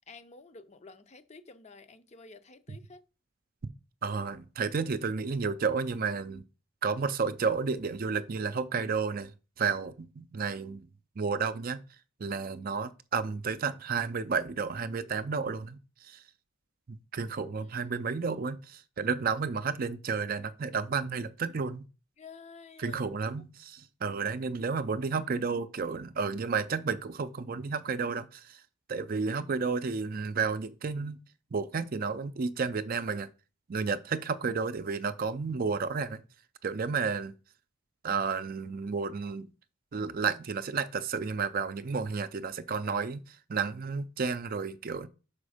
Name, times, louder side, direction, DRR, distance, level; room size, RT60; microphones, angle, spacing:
voice 1, 0.1-3.0 17.6-18.0 22.2-23.0, left 4 dB, 30° left, 0.6 m, -51 dB
voice 2, 4.0-6.4 6.8-9.3 9.6-10.9 11.2-11.8 12.2-16.2 16.9-21.8 22.8-28.6 28.9-31.2 31.5-33.3 33.7-36.2 36.6-37.3 38.0-39.5 39.9-45.1, right 5 dB, 45° right, 0.4 m, -32 dB
6.1 x 5.0 x 4.9 m
head